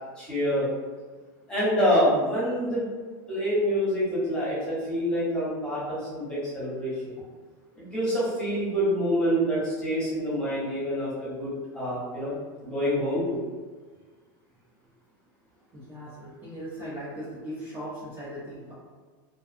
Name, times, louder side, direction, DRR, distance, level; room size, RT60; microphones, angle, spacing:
voice 1, 0.2-0.7 1.5-2.8 3.3-7.2 7.8-12.3 12.6-13.4, equal, 10° left, -9 dB, 1.0 m, -26 dB
voice 2, 15.7-18.7, equal, 20° right, -9 dB, 0.6 m, -38 dB
2.5 x 2.2 x 2.6 m, 1.5 s
supercardioid pair, 150°, 11 cm